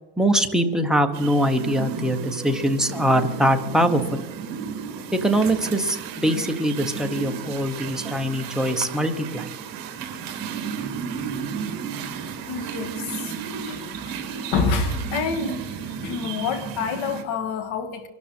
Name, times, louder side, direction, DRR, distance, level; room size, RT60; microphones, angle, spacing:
voice 1, 0.2-4.2 5.1-9.5, equal, ahead, 0.7 m, -22 dB
sound 1, 1.1-17.2, right 7 dB, 40° right, 2.7 m, -33 dB
voice 2, 12.5-13.4 13.7-18.1, left 4 dB, 50° left, 2.0 m, -28 dB
24.5 x 12.5 x 4.3 m
supercardioid pair, 150°, 49 cm